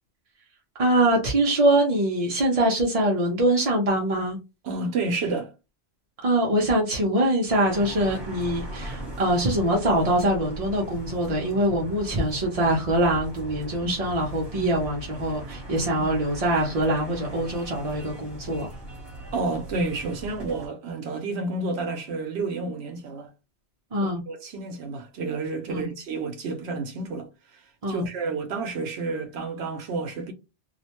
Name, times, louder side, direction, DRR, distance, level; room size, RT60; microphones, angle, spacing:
voice 1, 0.8-4.4 6.2-18.7 23.9-24.2 25.7-25.9 27.8-28.0, right 1 dB, 45° right, 0.5 m, -23 dB
voice 2, 4.6-5.5 13.8-13.9 14.6-14.7 19.3-23.3 24.0-30.3, right 3 dB, 75° right, 0.8 m, -30 dB
sound 1, 7.6-20.7, right 1 dB, 25° right, 1.0 m, -39 dB
2.4 x 2.1 x 2.8 m
omnidirectional pair, 1.1 m